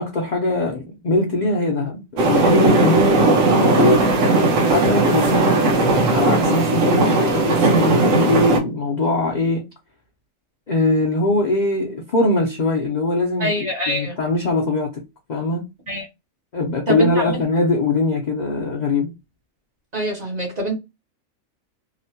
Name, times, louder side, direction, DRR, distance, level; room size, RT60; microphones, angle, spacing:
voice 1, 0.0-4.1 4.7-9.6 10.7-15.0 15.3-15.7 16.5-19.1, left 2 dB, 60° left, 0.4 m, -21 dB
sound 1, 2.2-8.6, right 2 dB, 70° right, 1.1 m, -17 dB
voice 2, 13.4-14.2 15.9-16.1 16.9-17.1 19.9-20.7, right 1 dB, 40° right, 0.7 m, -24 dB
3.0 x 2.1 x 2.7 m
omnidirectional pair, 1.4 m